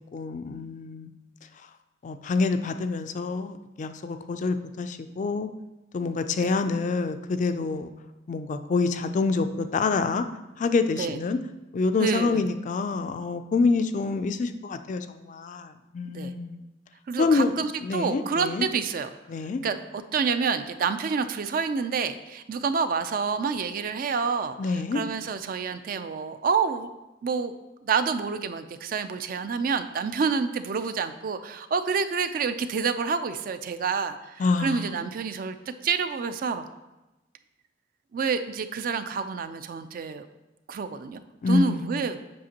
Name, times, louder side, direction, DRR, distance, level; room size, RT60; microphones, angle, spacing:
voice 1, 0.1-1.1 2.0-5.5 5.9-7.9 8.3-10.2 10.6-11.4 11.7-16.6 17.2-17.5 17.8-18.7 19.3-19.6 24.6-25.0 34.4-35.0 41.4-42.0, left 4 dB, 40° left, 9 dB, 0.3 m, -27 dB
voice 2, 12.0-12.5 16.1-16.3 17.1-19.1 19.6-24.6 24.9-26.9 27.2-27.5 27.8-35.6 35.8-36.6 38.1-40.3 40.7-41.2 41.5-42.2, right 5 dB, 50° right, 11 dB, 0.4 m, -28 dB
7.6 x 5.8 x 2.8 m, 1.1 s
head